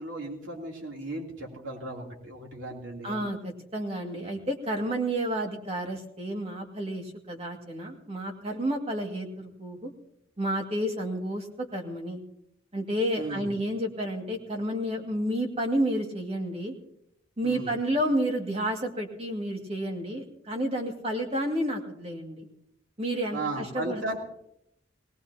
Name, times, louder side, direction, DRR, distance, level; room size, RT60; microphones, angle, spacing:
voice 1, 0.0-3.3 13.2-13.5 17.4-17.7 23.3-24.2, right 2 dB, 80° right, -1 dB, 3.2 m, -36 dB
voice 2, 3.0-9.9 10.4-12.2 12.7-16.7 17.4-22.4 23.0-24.0, right 1 dB, 35° right, 2 dB, 2.2 m, -30 dB
19.5 x 19.0 x 2.9 m, 0.75 s
head